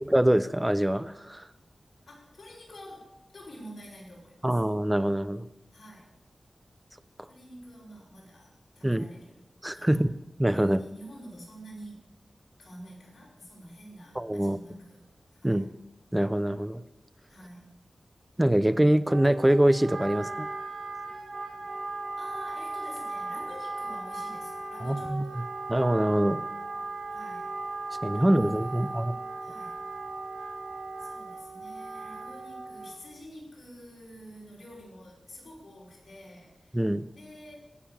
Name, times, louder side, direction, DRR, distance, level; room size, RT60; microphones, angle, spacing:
voice 1, 0.0-1.5 4.4-5.5 8.8-9.0 9.6-10.1 10.4-10.8 14.2-14.6 15.4-15.7 16.1-16.8 18.4-20.5 24.8-25.2 25.7-26.4 28.0-29.1 36.7-37.1, right 1 dB, 10° right, 14 dB, 0.6 m, -24 dB
voice 2, 2.1-4.6 5.7-6.1 7.3-9.4 9.7-10.1 10.5-12.1 12.6-15.0 15.3-15.7 17.3-17.7 22.2-25.4 27.1-27.5 28.1-29.8 31.0-36.8 37.1-37.5, equal, 70° left, -3 dB, 5.3 m, -48 dB
Wind instrument woodwind instrument, 19.1-33.1, right 3 dB, 65° right, 1.9 m, -37 dB
16.5 x 6.9 x 7.2 m, 0.94 s
wide cardioid pair, 100°, 0 cm